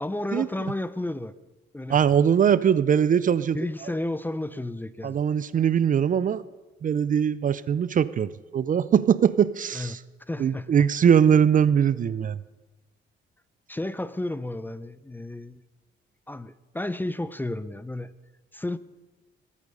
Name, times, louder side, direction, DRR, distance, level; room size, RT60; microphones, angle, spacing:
voice 1, 0.0-1.3 1.7-2.0 3.5-5.2 9.7-10.0 10.3-10.9 13.7-15.6 16.3-18.1 18.5-18.8, left 1 dB, 10° left, 15 dB, 0.5 m, -32 dB
voice 2, 1.9-3.6 5.0-6.4 6.8-10.0 10.4-12.4, right 8 dB, 40° right, 17 dB, 0.5 m, -21 dB
20.5 x 8.4 x 5.4 m, 1.2 s
cardioid pair, 90°, 20 cm